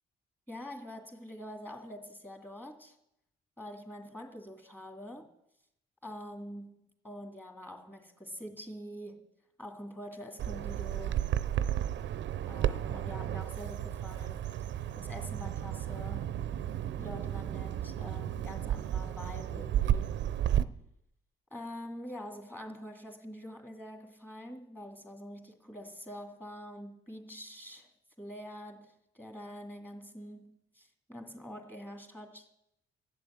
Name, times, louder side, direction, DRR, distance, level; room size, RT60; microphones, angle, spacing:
voice 1, 0.5-3.0 3.6-5.3 6.0-9.3 9.6-11.3 12.5-14.5 15.0-16.3 17.0-20.2 21.5-27.9 28.2-32.5, equal, 10° left, 2.2 m, -45 dB
Bird vocalization bird call bird song, 10.4-20.6, right 11 dB, 65° right, 0.6 m, -33 dB
12.0 x 7.7 x 8.8 m
cardioid pair, 90°, 20 cm